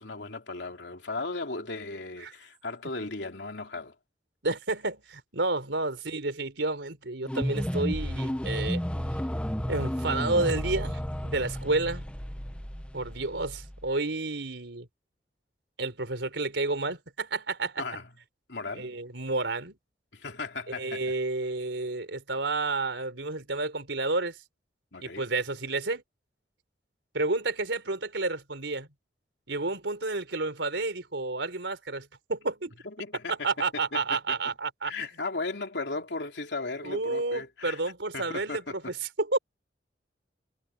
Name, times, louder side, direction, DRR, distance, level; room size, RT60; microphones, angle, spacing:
voice 1, 0.0-3.9 17.8-18.1 18.5-18.9 20.1-21.1 24.9-25.3 32.8-33.5 33.9-34.0 34.3-34.4 34.8-37.8 38.1-38.9, left 3 dB, 75° left, 3.0 m, -36 dB
voice 2, 4.4-8.8 9.7-12.1 12.9-14.9 15.8-17.8 18.7-19.8 20.8-24.4 25.0-26.0 27.1-28.9 29.5-32.7 33.3-34.9 36.8-39.4, right 3 dB, 90° right, 3.9 m, -30 dB
sound 1, 7.2-13.9, equal, 5° left, 1.1 m, -32 dB
head